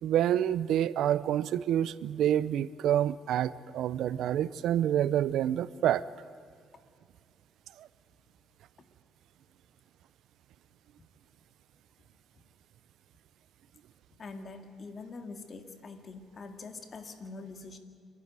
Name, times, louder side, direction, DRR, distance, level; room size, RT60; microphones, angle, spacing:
voice 1, 0.0-6.0 7.8-7.9, right 11 dB, 80° right, 17 dB, 0.6 m, -28 dB
voice 2, 14.2-17.8, left 3 dB, 45° left, 6 dB, 2.1 m, -44 dB
27.5 x 11.5 x 9.5 m, 2.3 s
cardioid pair, 90°, 0 cm